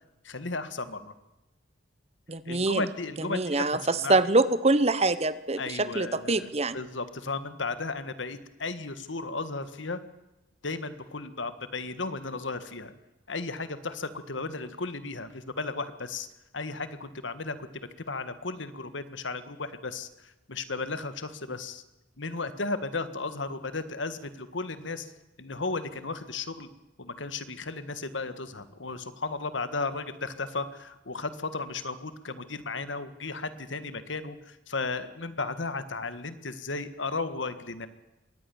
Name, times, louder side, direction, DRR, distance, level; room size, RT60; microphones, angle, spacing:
voice 1, 0.2-1.1 2.4-4.2 5.6-6.5 6.7-10.0 10.6-12.9 13.3-16.3 16.5-17.6 18.1-21.8 22.2-25.1 25.4-26.7 27.0-37.9, left 3 dB, 80° left, 12 dB, 1.6 m, -35 dB
voice 2, 2.3-2.8 3.3-6.8, right 2 dB, 35° right, 14 dB, 1.0 m, -25 dB
23.0 x 18.5 x 7.1 m, 0.97 s
head